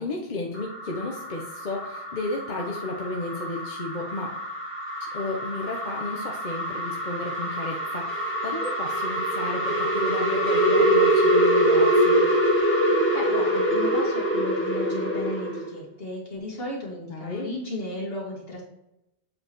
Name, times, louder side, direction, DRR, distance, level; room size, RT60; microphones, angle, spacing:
voice 1, 0.0-4.3 5.0-12.3 17.1-17.5, left 2 dB, 45° left, 0 dB, 0.9 m, -33 dB
sound 1, 0.5-15.7, right 1 dB, 10° left, 1.4 m, -24 dB
voice 2, 13.1-18.6, left 1 dB, 60° left, -3 dB, 2.1 m, -35 dB
7.6 x 4.7 x 3.0 m, 0.89 s
omnidirectional pair, 1.1 m